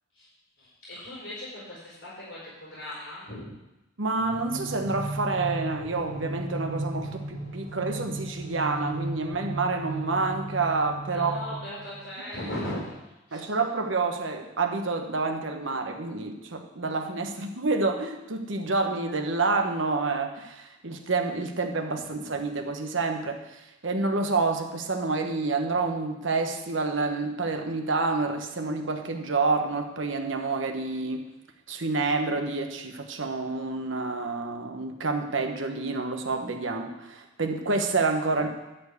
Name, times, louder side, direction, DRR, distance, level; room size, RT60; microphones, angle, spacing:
voice 1, 0.6-3.5 11.1-12.8 13.3-13.5, left 1 dB, 70° left, -7 dB, 4.3 m, -38 dB
voice 2, 4.0-11.4 13.3-31.3 31.7-38.5, right 3 dB, 80° right, 4 dB, 1.1 m, -28 dB
sound 1, 4.2-12.1, right 2 dB, 40° left, 1.7 m, -36 dB
11.5 x 4.6 x 8.2 m, 0.98 s
head